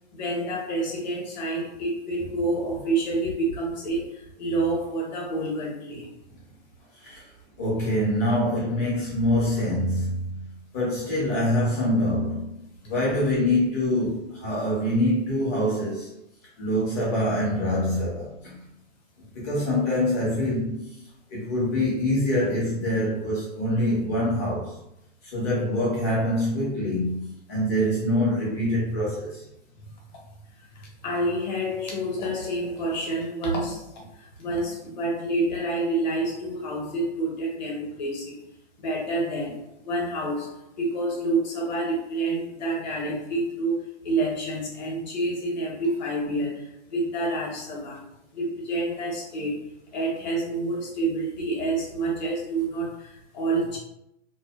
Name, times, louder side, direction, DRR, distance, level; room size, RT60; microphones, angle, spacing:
voice 1, 0.2-6.1 30.7-38.4 38.8-48.0 48.3-49.7 49.9-53.8, right 2 dB, 40° left, 0.8 m, -28 dB
voice 2, 7.6-10.4 10.7-16.1 16.6-18.6 19.3-21.0 21.3-24.8 25.2-29.4, left 1 dB, 15° left, 0.4 m, -25 dB
2.6 x 2.0 x 2.3 m
hypercardioid pair, 160°, 36 cm